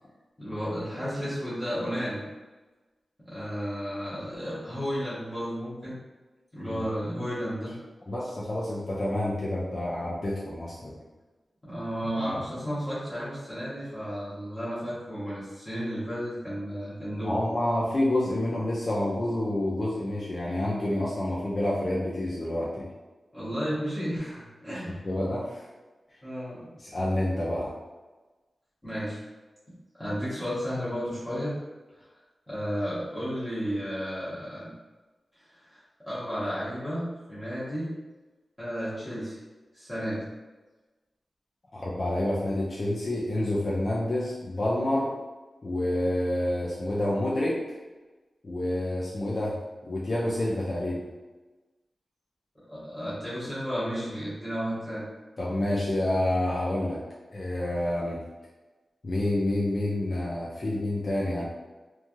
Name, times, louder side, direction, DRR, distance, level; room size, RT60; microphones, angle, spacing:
voice 1, 0.4-2.2 3.3-6.0 6.5-7.8 11.6-17.4 23.3-25.0 26.2-26.7 28.8-29.2 29.9-31.6 32.5-34.7 35.7-37.9 38.6-39.4 39.7-40.2 52.7-55.1, equal, 15° left, -12 dB, 1.0 m, -33 dB
voice 2, 8.1-11.0 12.2-12.3 17.2-22.9 24.9-25.7 26.8-27.7 41.7-45.1 45.6-47.6 48.4-49.6 49.8-51.0 55.4-57.0 57.3-58.2 59.0-61.4, left 1 dB, 40° left, -6 dB, 0.4 m, -28 dB
3.1 x 2.3 x 2.6 m, 1.2 s
wide cardioid pair, 140°, 0 cm